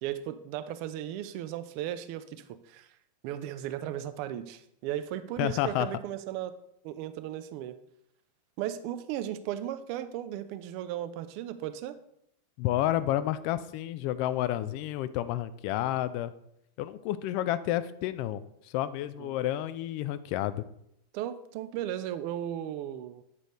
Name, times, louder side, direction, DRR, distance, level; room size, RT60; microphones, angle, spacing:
voice 1, 0.0-2.9 3.2-6.5 6.8-7.8 8.6-12.0 19.0-19.3 21.1-23.2, right 11 dB, 45° right, 12 dB, 0.4 m, -36 dB
voice 2, 5.4-5.9 12.6-16.3 16.8-20.6, left 13 dB, 45° left, 14 dB, 0.3 m, -30 dB
8.3 x 5.1 x 3.1 m, 0.76 s
figure-of-eight pair, 90°, 0 cm